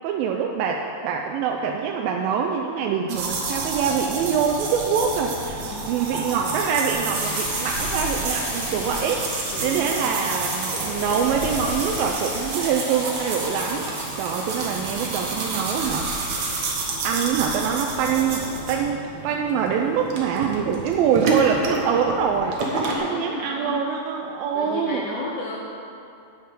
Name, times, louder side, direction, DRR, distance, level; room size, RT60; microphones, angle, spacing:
voice 1, 0.0-16.4 17.0-25.2, right 6 dB, 85° right, 1 dB, 2.1 m, -25 dB
sound 1, 3.1-23.0, right 3 dB, 65° right, 1.9 m, -29 dB
voice 2, 5.6-5.9 6.2-6.3 9.5-10.2 22.8-24.0 24.5-25.7, left 2 dB, 75° left, -3 dB, 2.0 m, -34 dB
sound 2, 7.1-16.7, left 1 dB, 40° left, 2.0 m, -35 dB
10.5 x 4.7 x 7.4 m, 2.5 s
omnidirectional pair, 4.6 m